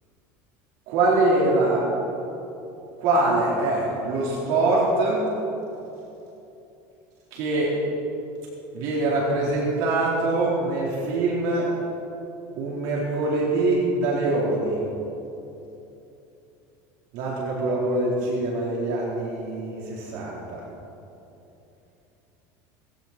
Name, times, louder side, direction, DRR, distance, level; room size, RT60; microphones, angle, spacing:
voice 1, 0.9-1.8 3.0-5.2 7.3-7.7 8.7-11.7 12.6-14.8 17.1-20.6, right 2 dB, 60° right, -5 dB, 4.1 m, -23 dB
19.5 x 16.0 x 4.5 m, 2.9 s
cardioid pair, 160°, 8 cm